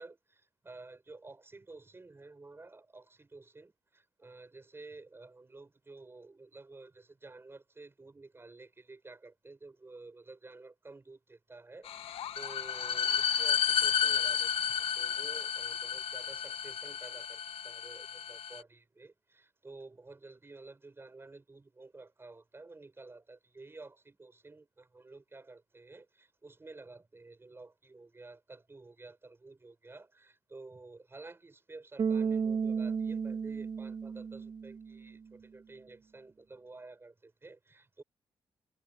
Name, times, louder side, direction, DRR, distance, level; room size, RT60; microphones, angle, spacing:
voice 1, 0.0-38.0, right 3 dB, 25° right, 5.1 m, -52 dB
sound 1, 11.9-18.6, left 8 dB, 85° left, 1.1 m, -32 dB
Bass guitar, 32.0-35.1, right 6 dB, 50° right, 1.5 m, -33 dB
cardioid pair, 90°, 9 cm